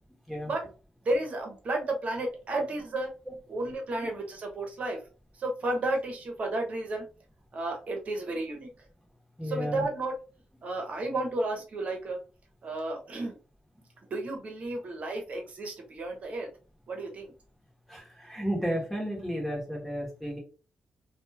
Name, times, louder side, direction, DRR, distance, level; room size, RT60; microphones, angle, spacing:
voice 1, 1.0-3.1 3.5-5.0 5.4-7.0 7.5-8.7 9.4-10.1 10.6-12.2 12.6-13.4 14.1-16.5 16.9-17.3, right 2 dB, 55° right, 2 dB, 1.0 m, -32 dB
voice 2, 9.4-9.9 17.9-20.4, equal, 5° left, -1 dB, 1.2 m, -33 dB
2.6 x 2.3 x 2.7 m, 0.34 s
cardioid pair, 80°, 3 cm